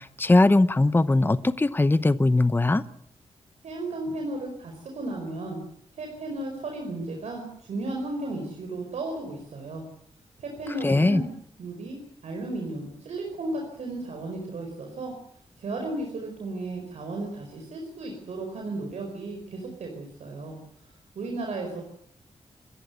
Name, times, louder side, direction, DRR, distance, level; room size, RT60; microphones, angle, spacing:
voice 1, 0.0-2.8 10.8-11.2, left 2 dB, 20° left, 13 dB, 0.9 m, -20 dB
voice 2, 3.6-5.6 6.0-9.8 10.4-11.3 11.6-15.1 15.6-20.6 21.1-21.8, right 2 dB, 90° right, 2 dB, 4.8 m, -34 dB
28.0 x 14.5 x 8.0 m, 0.68 s
wide cardioid pair, 100°, 11 cm